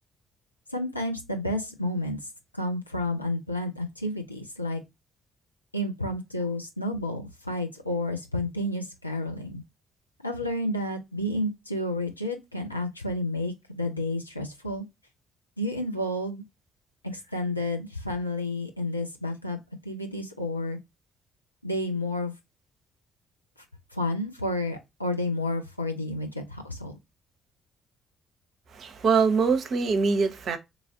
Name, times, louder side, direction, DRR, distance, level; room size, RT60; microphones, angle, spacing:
voice 1, 0.7-2.2 2.5-4.8 5.7-9.6 10.2-14.8 15.6-16.4 17.0-19.6 19.8-20.8 21.6-22.3 23.9-27.0, left 1 dB, 90° left, 0.5 m, -30 dB
voice 2, 28.7-30.6, right 5 dB, 50° right, 0.6 m, -23 dB
3.0 x 2.4 x 2.6 m
figure-of-eight pair, 45°, 0 cm